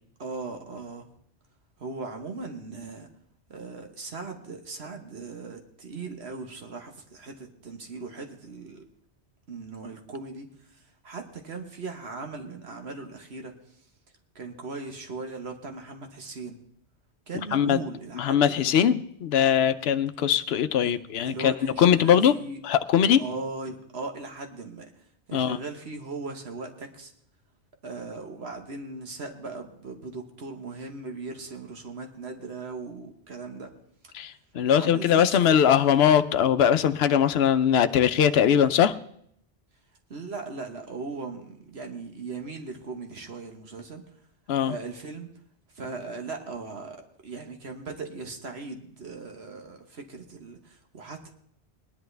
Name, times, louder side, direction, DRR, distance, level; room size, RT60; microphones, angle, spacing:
voice 1, 0.2-1.1 1.8-3.1 3.5-8.8 9.5-13.9 14.3-16.6 17.3-18.9 20.8-21.0 21.2-22.6 23.2-27.1 27.8-33.7 34.0-34.1 34.7-35.6 40.1-44.0 44.6-45.3 45.7-51.3, right 3 dB, 65° right, 4 dB, 1.5 m, -38 dB
voice 2, 17.5-17.8 18.1-22.3 22.6-23.2 25.3-25.6 34.1-39.0 44.5-44.7, left 9 dB, 65° left, 11 dB, 0.8 m, -21 dB
20.0 x 10.5 x 3.3 m, 0.69 s
omnidirectional pair, 1.2 m